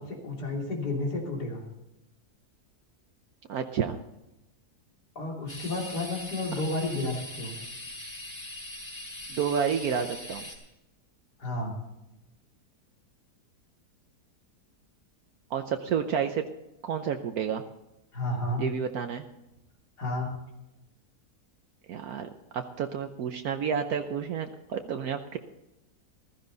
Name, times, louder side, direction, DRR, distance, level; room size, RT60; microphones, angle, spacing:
voice 1, 0.0-1.6 5.2-7.6 11.4-11.7 18.1-18.6 20.0-20.3, left 2 dB, 85° left, 0 dB, 3.7 m, -31 dB
voice 2, 3.5-4.0 9.3-10.4 15.5-16.4 16.8-17.6 18.6-19.3 21.9-25.4, right 7 dB, 70° right, 6 dB, 1.2 m, -30 dB
sound 1, 5.5-10.6, left 1 dB, 25° left, 4.1 m, -41 dB
15.0 x 13.5 x 4.0 m, 0.95 s
omnidirectional pair, 1.7 m